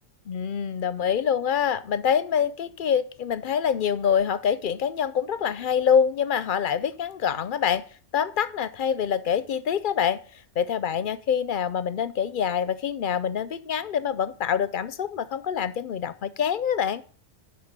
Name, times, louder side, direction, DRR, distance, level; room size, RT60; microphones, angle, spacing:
voice 1, 0.3-7.8 8.1-10.2 10.6-17.0, left 8 dB, 55° left, 0.6 m, -25 dB
10.0 x 5.6 x 6.7 m
omnidirectional pair, 1.3 m